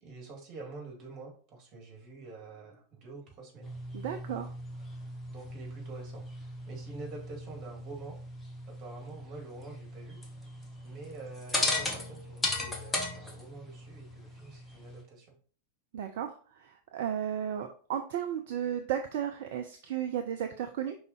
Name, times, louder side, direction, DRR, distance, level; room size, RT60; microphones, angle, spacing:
voice 1, 0.0-3.7 5.3-8.2 8.7-10.2 10.8-15.3, right 3 dB, 30° right, 0 dB, 2.6 m, -47 dB
sound 1, 3.6-15.0, left 2 dB, 10° left, 1.3 m, -38 dB
voice 2, 3.9-4.5 15.9-21.0, right 9 dB, 50° right, 6 dB, 0.5 m, -34 dB
5.3 x 3.9 x 4.6 m, 0.42 s
figure-of-eight pair, 90°, 0 cm